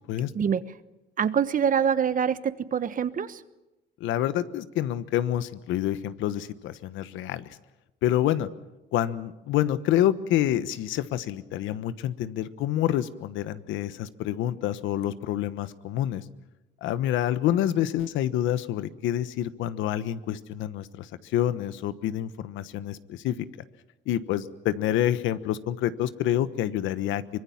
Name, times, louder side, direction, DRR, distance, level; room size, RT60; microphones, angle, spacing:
voice 1, 1.2-3.4, right 7 dB, 45° right, 14 dB, 1.2 m, -25 dB
voice 2, 4.0-7.5 8.0-8.5 8.9-16.2 16.8-23.5 24.1-27.2, left 12 dB, 90° left, 13 dB, 1.2 m, -27 dB
24.5 x 21.5 x 7.3 m, 1.0 s
cardioid pair, 105°, 20 cm